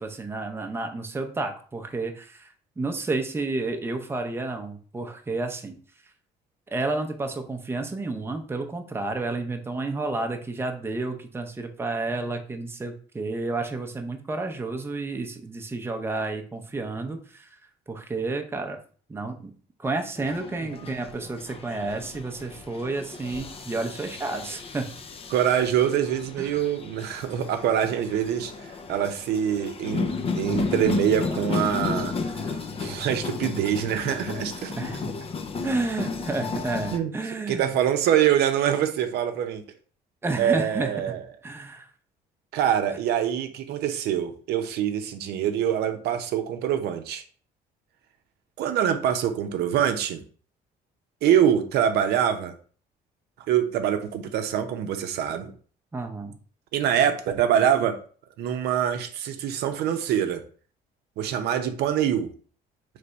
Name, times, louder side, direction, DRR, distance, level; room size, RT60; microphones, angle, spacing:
voice 1, 0.0-5.8 6.7-17.5 17.9-18.8 19.1-19.5 19.8-24.9 26.4-26.6 34.8-35.1 35.6-37.8 40.2-41.0 41.4-41.9 55.9-56.4, right 3 dB, 15° right, 4 dB, 0.6 m, -31 dB
sound 1, 20.2-37.0, left 4 dB, 35° left, 0.5 m, -33 dB
voice 2, 25.3-28.5 28.9-30.1 30.3-34.7 36.9-37.1 37.5-39.6 40.4-41.2 42.5-47.2 48.6-50.2 51.2-52.5 53.5-55.5 56.7-58.0 58.4-60.4 61.2-62.3, right 9 dB, 75° right, 7 dB, 0.6 m, -24 dB
3.4 x 3.3 x 3.9 m, 0.42 s
cardioid pair, 110°, 17 cm